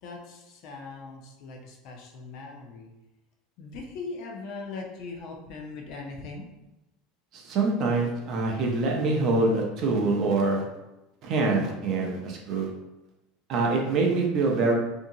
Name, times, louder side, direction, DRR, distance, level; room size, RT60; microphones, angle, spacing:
voice 1, 0.0-2.9 3.6-6.4, left 3 dB, 40° left, 1 dB, 0.4 m, -40 dB
voice 2, 7.3-10.6 11.2-12.7 13.5-14.7, right 3 dB, 35° right, 0 dB, 0.4 m, -25 dB
2.8 x 2.6 x 2.6 m, 0.96 s
cardioid pair, 180°, 0 cm